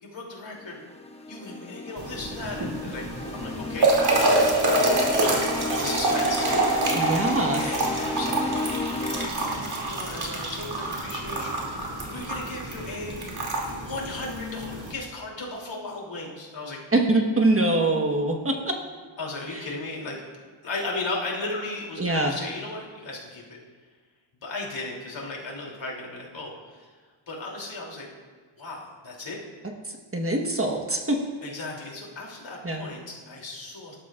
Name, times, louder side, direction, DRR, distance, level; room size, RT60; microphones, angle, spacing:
voice 1, 0.0-0.8 1.3-4.7 5.0-7.2 7.6-8.6 9.1-11.6 12.1-13.2 13.8-16.8 19.2-20.2 20.6-23.4 24.4-26.9 27.3-28.1 28.6-29.4 31.4-34.0, left 2 dB, 65° left, -2 dB, 3.2 m, -36 dB
sound 1, 0.6-9.3, left 2 dB, 15° left, 0.8 m, -34 dB
sound 2, 2.0-14.9, right 2 dB, 50° right, 2.8 m, -26 dB
voice 2, 6.9-7.6 16.9-18.7 19.5-19.6 22.0-22.3 29.8-31.2 32.6-32.8, right 2 dB, 30° right, 2 dB, 1.4 m, -24 dB
19.0 x 12.0 x 2.5 m, 1.5 s
wide cardioid pair, 120°, 48 cm